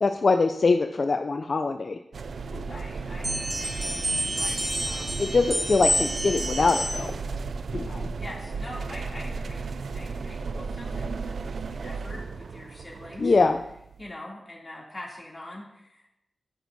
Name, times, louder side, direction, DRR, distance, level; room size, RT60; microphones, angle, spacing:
voice 1, 0.0-2.0 2.5-2.8 5.2-7.1 7.7-8.1 13.2-13.6, left 3 dB, 55° left, 7 dB, 0.4 m, -23 dB
sound 1, 2.1-14.1, right 4 dB, 80° right, 0.3 m, -35 dB
voice 2, 2.7-5.2 8.2-13.4 14.0-16.1, left 1 dB, 20° left, -4 dB, 2.8 m, -44 dB
sound 2, 3.2-7.2, right 1 dB, 45° right, 2.9 m, -29 dB
13.0 x 6.0 x 2.7 m, 0.81 s
wide cardioid pair, 75°, 0 cm